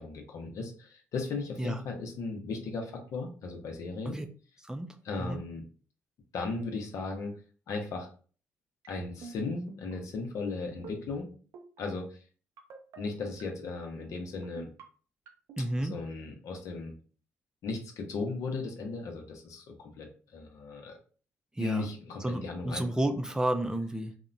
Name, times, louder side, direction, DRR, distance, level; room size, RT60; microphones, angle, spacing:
voice 1, 0.0-4.2 5.0-5.6 6.3-7.3 7.7-8.1 8.9-11.3 11.8-12.2 13.0-14.7 15.8-16.9 17.6-21.0 21.6-22.8, left 3 dB, 70° left, 3 dB, 0.6 m, -36 dB
sound 1, 8.8-9.3 9.7-9.9 10.7-11.2 11.5-11.8 12.6-13.0 13.4-13.8 14.4-14.8 15.3-15.6, right 5 dB, 75° right, 0.5 m, -46 dB
voice 2, 15.6-16.0 21.6-21.9 22.2-24.1, right 1 dB, 10° right, 7 dB, 0.4 m, -31 dB
2.8 x 2.1 x 2.5 m, 0.40 s
supercardioid pair, 55°, 6 cm